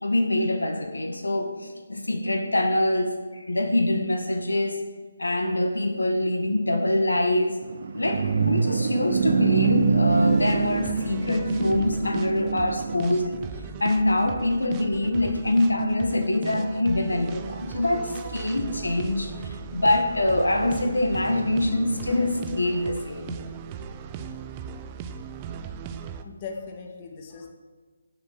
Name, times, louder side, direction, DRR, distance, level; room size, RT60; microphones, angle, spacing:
voice 1, 0.0-4.9 5.2-13.4 13.8-23.4, left 1 dB, 75° left, 6 dB, 2.1 m, -24 dB
sound 1, 7.6-13.2, right 5 dB, 45° right, 1.3 m, -25 dB
sound 2, 10.1-26.2, right 6 dB, 20° right, 0.9 m, -38 dB
voice 2, 26.2-27.5, left 5 dB, 30° left, 3 dB, 2.1 m, -39 dB
17.0 x 7.5 x 7.8 m, 1.5 s
figure-of-eight pair, 145°, 0 cm